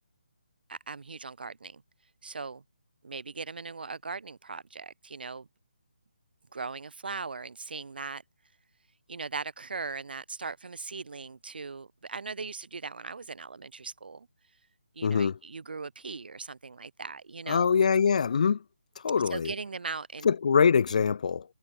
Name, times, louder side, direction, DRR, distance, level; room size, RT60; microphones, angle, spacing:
voice 1, 0.7-1.8 2.2-2.6 3.0-5.5 6.5-8.2 9.1-14.3 15.0-17.7 19.3-20.3, right 4 dB, 65° right, 1.2 m, -39 dB
voice 2, 15.0-15.3 17.5-18.6 19.0-19.5 20.2-21.4, left 6 dB, 45° left, 0.5 m, -23 dB
hypercardioid pair, 165°, 5 cm